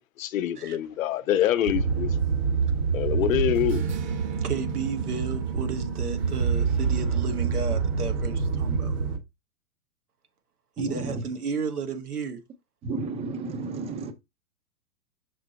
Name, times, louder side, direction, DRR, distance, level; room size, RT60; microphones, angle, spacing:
voice 1, 0.2-2.1 2.9-3.8, left 11 dB, 65° left, 0.9 m, -25 dB
sound 1, 1.7-9.2, right 5 dB, 50° right, 1.5 m, -26 dB
voice 2, 4.4-8.9 10.8-12.4, right 6 dB, 85° right, 1.6 m, -33 dB
voice 3, 10.8-11.2 12.8-14.1, right 3 dB, 15° right, 0.6 m, -32 dB
6.1 x 4.3 x 4.0 m
hypercardioid pair, 120°, 44 cm